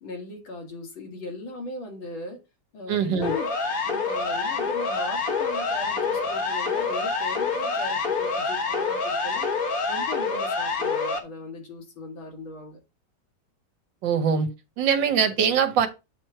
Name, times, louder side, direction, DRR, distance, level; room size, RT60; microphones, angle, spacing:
voice 1, 0.0-2.4 2.7-3.5 3.8-9.5 9.9-12.8, left 2 dB, 80° left, 2.7 m, -38 dB
voice 2, 2.9-3.3 14.0-14.5 14.8-15.9, right 7 dB, 70° right, 1.6 m, -22 dB
Siren, 3.2-11.2, left 4 dB, 50° left, 1.4 m, -27 dB
7.9 x 3.1 x 4.4 m
omnidirectional pair, 2.2 m